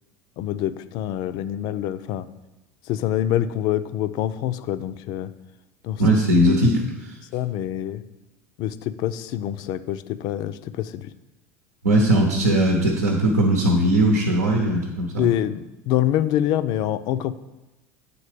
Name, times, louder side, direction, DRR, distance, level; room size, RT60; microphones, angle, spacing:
voice 1, 0.4-2.3 2.9-5.3 5.8-6.0 7.3-8.0 8.6-11.1 15.2-17.4, left 12 dB, 55° left, 13 dB, 0.4 m, -25 dB
voice 2, 6.0-7.2 11.8-15.3, right 1 dB, 90° right, 1 dB, 0.9 m, -19 dB
8.5 x 3.9 x 5.0 m, 1.0 s
hypercardioid pair, 80°, 8 cm